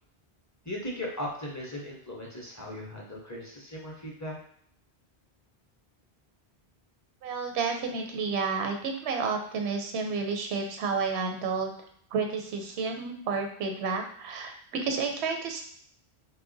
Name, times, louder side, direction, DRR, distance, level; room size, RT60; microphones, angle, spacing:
voice 1, 0.6-4.4, left 1 dB, 20° left, -2 dB, 0.5 m, -38 dB
voice 2, 7.2-11.7 12.1-15.6, right 5 dB, 85° right, 4 dB, 0.9 m, -31 dB
3.1 x 2.1 x 3.8 m, 0.62 s
omnidirectional pair, 1.1 m